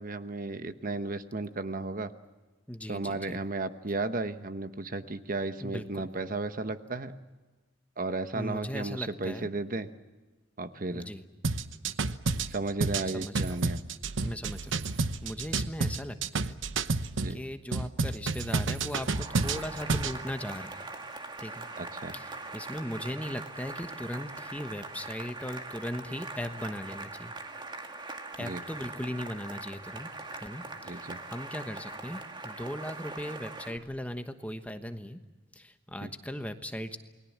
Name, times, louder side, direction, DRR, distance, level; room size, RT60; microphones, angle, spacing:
voice 1, 0.0-2.1 2.9-7.1 8.0-9.9 10.6-11.1 12.5-13.8 17.2-17.4 21.8-22.1 28.4-28.6 30.8-31.2 36.0-36.1, right 2 dB, 45° right, 10 dB, 1.1 m, -34 dB
voice 2, 2.7-3.4 5.6-6.1 8.3-9.5 10.9-11.2 13.1-13.6 14.2-16.6 16.9-17.0 17.3-20.8 21.4-21.7 22.1-27.4 28.4-30.1 30.4-35.2 35.5-37.0, equal, 5° left, 8 dB, 1.2 m, -38 dB
sound 1, 11.4-17.3 17.7-20.2, right 3 dB, 80° right, 1.0 m, -30 dB
Cheering / Applause, 19.0-33.8, right 3 dB, 25° right, 1.9 m, -42 dB
29.0 x 20.5 x 7.4 m, 1.2 s
head